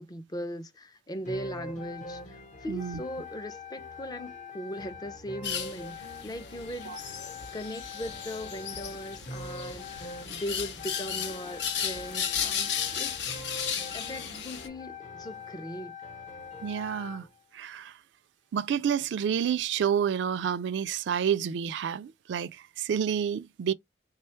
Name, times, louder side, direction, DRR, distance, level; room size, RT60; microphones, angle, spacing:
voice 1, 0.0-7.2 7.5-13.2 13.9-15.9, equal, 20° left, 0.4 m, -39 dB
sound 1, 1.3-17.3, left 3 dB, 45° left, 0.8 m, -43 dB
voice 2, 2.7-3.0 6.9-7.0 16.6-17.3 17.5-18.0 18.5-23.7, right 8 dB, 75° right, 0.3 m, -29 dB
sound 2, 5.4-14.7, left 8 dB, 75° left, 0.7 m, -35 dB
3.3 x 2.3 x 4.3 m
head